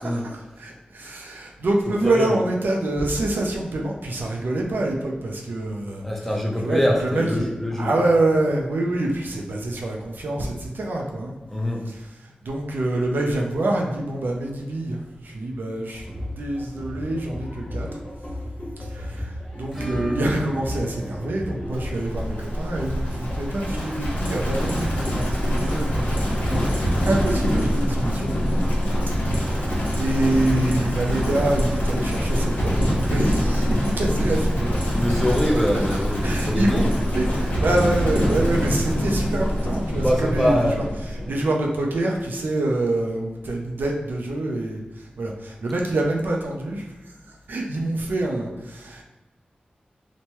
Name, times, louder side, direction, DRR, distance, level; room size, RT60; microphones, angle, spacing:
voice 1, 0.0-6.0 6.6-11.3 11.9-17.9 18.8-28.4 29.1-35.4 36.2-40.8 41.3-49.0, right 2 dB, 80° right, 0 dB, 0.4 m, -26 dB
voice 2, 2.0-2.4 6.0-7.9 11.5-11.9 26.3-26.8 34.9-36.9 40.0-40.8, equal, 5° left, -1 dB, 0.7 m, -24 dB
sound 1, 15.9-23.8, left 1 dB, 50° left, 1.1 m, -34 dB
Acoustic guitar / Strum, 19.7-28.3 28.6-28.7 29.0-29.1 29.4-29.5 31.6-31.7 32.8-32.9, right 1 dB, 15° right, 1.0 m, -40 dB
Livestock farm animals working animals, 21.7-41.4, equal, 70° left, 0.8 m, -24 dB
2.9 x 2.1 x 3.0 m, 1.1 s
cardioid pair, 55°, 3 cm